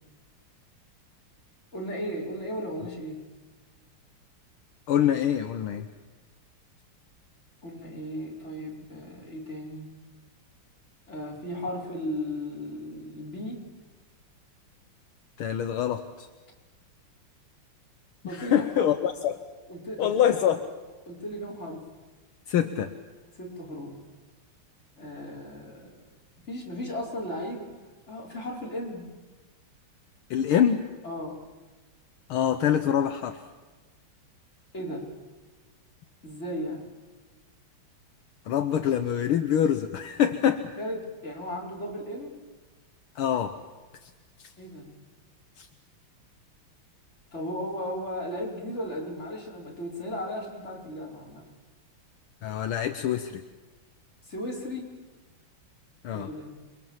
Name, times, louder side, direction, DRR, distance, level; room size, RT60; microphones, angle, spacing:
voice 1, 1.7-3.2 7.6-9.9 11.1-13.6 18.3-18.9 19.7-20.6 21.1-21.9 23.3-24.0 25.0-26.0 26.5-27.7 28.1-29.1 31.0-31.4 34.7-35.1 36.2-36.9 40.8-42.4 44.6-44.9 47.3-51.4 54.2-54.9 56.1-56.5, equal, 30° left, -3 dB, 5.6 m, -36 dB
voice 2, 4.9-5.9 15.4-16.3 18.2-19.4 20.0-20.6 22.5-22.9 30.3-30.9 32.3-33.4 38.5-40.7 43.2-43.5 44.0-44.1 44.4-44.5 45.6-45.7 52.4-53.4 56.0-56.3, left 9 dB, 75° left, 7 dB, 1.8 m, -25 dB
28.5 x 23.0 x 7.4 m, 1.3 s
omnidirectional pair, 2.4 m